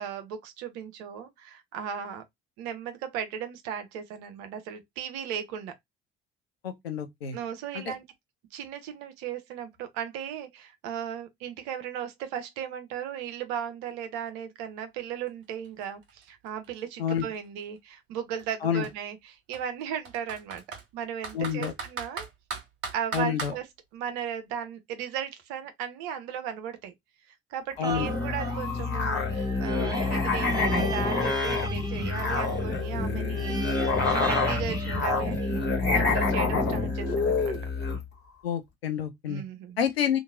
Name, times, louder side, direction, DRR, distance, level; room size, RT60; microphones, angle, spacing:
voice 1, 0.0-2.2 2.6-5.7 7.3-8.0 8.5-22.3 22.9-23.6 23.9-26.9 27.5-35.6 35.9-37.5 39.3-39.8, right 8 dB, 60° right, 0.8 m, -36 dB
voice 2, 6.6-7.4 7.7-7.9 17.0-17.2 18.6-18.8 21.3-21.7 23.1-23.5 27.8-28.1 38.4-39.4 39.8-40.2, left 8 dB, 80° left, 0.6 m, -28 dB
Computer keyboard, 15.3-15.4 15.6-17.6 18.4-18.5 18.8-18.9 19.5-20.8 21.2-23.6, right 4 dB, 45° right, 1.4 m, -38 dB
sound 1, 27.8-35.7 36.2-36.3, right 2 dB, 15° right, 0.5 m, -38 dB
Musical instrument, 27.9-38.0, left 3 dB, 35° left, 1.4 m, -27 dB
2.9 x 2.6 x 2.5 m
figure-of-eight pair, 50°, 30 cm